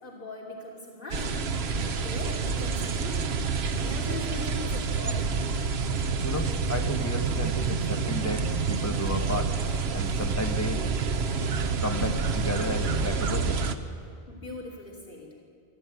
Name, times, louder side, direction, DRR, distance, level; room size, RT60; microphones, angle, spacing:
voice 1, 0.0-5.4 14.3-15.3, left 2 dB, 60° left, -1 dB, 3.1 m, -40 dB
sound 1, 1.1-13.8, right 5 dB, 85° right, 1.2 m, -28 dB
voice 2, 6.2-9.6 9.9-10.9 11.8-13.7, left 1 dB, 15° left, 4 dB, 1.4 m, -33 dB
23.5 x 13.5 x 9.1 m, 2.3 s
omnidirectional pair, 1.0 m